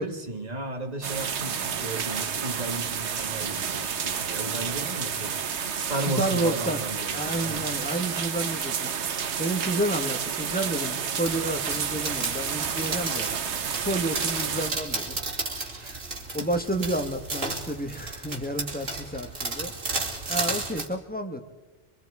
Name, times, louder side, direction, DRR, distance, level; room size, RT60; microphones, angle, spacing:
voice 1, 0.0-5.3 5.8-7.6 15.7-16.0 16.4-16.5, right 2 dB, 35° right, 4 dB, 1.9 m, -34 dB
sound 1, 1.0-14.7, right 7 dB, 70° right, 1.2 m, -30 dB
voice 2, 6.1-6.8 7.1-8.9 9.4-13.3 13.7-15.2 16.3-19.7 20.3-21.4, right 1 dB, 10° left, 4 dB, 1.2 m, -30 dB
sound 2, 11.2-20.9, right 3 dB, 85° right, 3.0 m, -33 dB
25.0 x 25.0 x 4.8 m, 1.1 s
omnidirectional pair, 1.2 m